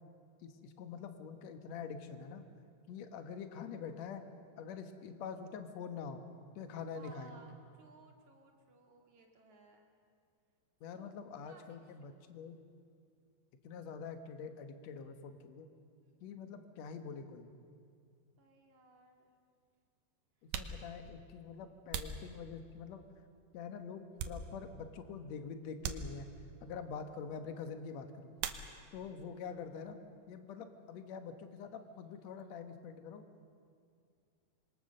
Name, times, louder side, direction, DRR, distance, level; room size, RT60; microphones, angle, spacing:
voice 1, 0.4-2.5 2.9-4.3 4.6-6.2 6.6-7.4 10.8-12.6 13.6-15.7 16.2-17.5 20.4-23.0 23.5-26.3 26.6-28.3 28.9-30.0 30.3-33.2, left 6 dB, 60° left, 7 dB, 1.9 m, -45 dB
voice 2, 6.9-9.9 10.9-11.1 11.5-11.6 16.0-16.2 18.4-19.3 28.8-29.1, right 4 dB, 50° right, 1 dB, 3.5 m, -61 dB
sound 1, 18.6-18.7 19.6-19.8 20.3-23.0 23.5-24.9 25.2-25.3 25.8-26.6 28.4-29.2 29.4-30.1 30.4-32.5, right 6 dB, 90° right, 3.1 m, -44 dB
26.5 x 22.5 x 6.7 m, 2.3 s
omnidirectional pair, 4.6 m